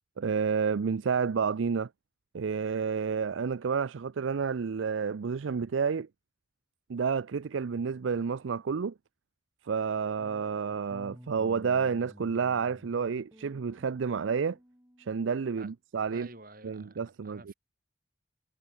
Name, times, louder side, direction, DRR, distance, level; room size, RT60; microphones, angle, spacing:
voice 1, 0.2-1.9 2.3-6.1 6.9-8.9 9.6-14.6 15.0-16.3 16.6-17.5, right 6 dB, 90° right, 0.5 m, -30 dB
sound 1, 10.9-15.7, equal, 15° right, 7.2 m, -53 dB
voice 2, 16.1-17.5, right 2 dB, 50° right, 5.7 m, -50 dB
head